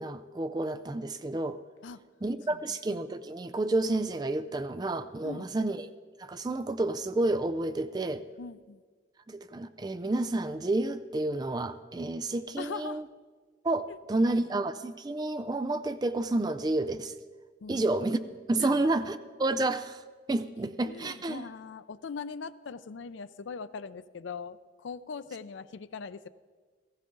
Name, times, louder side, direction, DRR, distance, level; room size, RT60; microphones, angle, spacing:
voice 1, 0.0-1.6 2.2-5.9 6.2-8.2 9.3-13.0 13.6-17.1 17.7-18.2 18.5-20.0 20.3-21.5, right 2 dB, 20° right, 12 dB, 0.4 m, -30 dB
voice 2, 8.4-8.8 12.6-13.0 14.3-14.4 17.6-17.9 18.6-18.9 20.8-26.3, left 5 dB, 85° left, 14 dB, 0.5 m, -41 dB
15.5 x 15.5 x 3.9 m, 1.5 s
head